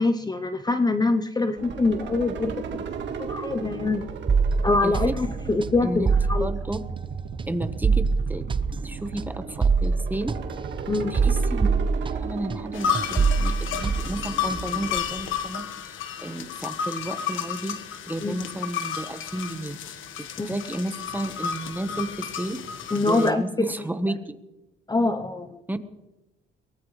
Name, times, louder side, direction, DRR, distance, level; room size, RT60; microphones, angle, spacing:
voice 1, 0.0-2.6 3.2-4.1 4.6-6.5 10.9-11.1 18.2-18.4 20.4-20.5 22.9-23.4 24.9-25.6, left 3 dB, 20° left, 9 dB, 0.8 m, -24 dB
sound 1, 1.6-15.4, right 6 dB, 65° right, 1.8 m, -36 dB
sound 2, 4.3-12.7 12.9-14.9, right 5 dB, 25° right, 0.7 m, -25 dB
voice 2, 4.8-5.1 5.8-6.1 6.3-6.8 7.5-8.4 8.8-10.4 11.1-11.7 12.1-17.8 18.1-22.6 23.1-24.3 25.7-25.8, right 1 dB, 10° right, 9 dB, 1.2 m, -32 dB
sound 3, 12.7-23.3, left 8 dB, 80° left, 1.4 m, -32 dB
23.0 x 18.5 x 3.3 m, 1.0 s
cardioid pair, 90°, 20 cm